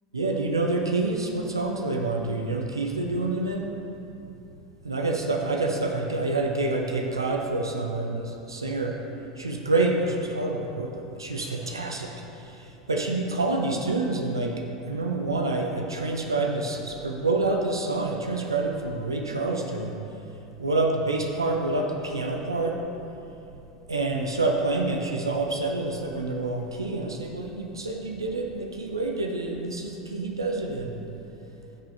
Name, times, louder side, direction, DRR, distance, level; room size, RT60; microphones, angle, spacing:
voice 1, 0.1-3.7 4.8-9.0 9.4-12.1 12.9-14.6 14.8-20.0 20.6-22.8 23.9-31.0, right 2 dB, 80° right, 2 dB, 0.7 m, -27 dB
14.5 x 6.5 x 2.8 m, 2.8 s
figure-of-eight pair, 80°, 2 cm